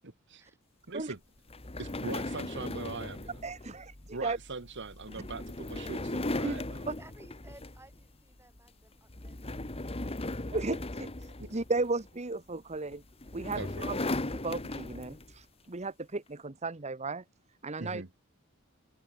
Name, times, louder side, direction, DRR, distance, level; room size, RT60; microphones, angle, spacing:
voice 1, 0.9-1.2 1.8-3.4 4.1-6.9 11.4-11.5 13.5-13.9 17.8-18.1, right 3 dB, 55° right, 1.4 m, -41 dB
sound 1, 1.5-8.0 8.4-8.7 9.1-12.1 12.9-15.4, left 2 dB, 25° left, 1.5 m, -37 dB
voice 2, 3.4-4.4 6.4-6.9 10.5-13.0 13.3-14.0 14.3-17.2 17.6-18.0, right 3 dB, 30° right, 1.1 m, -35 dB
voice 3, 7.0-10.4, right 1 dB, 10° right, 6.5 m, -58 dB
head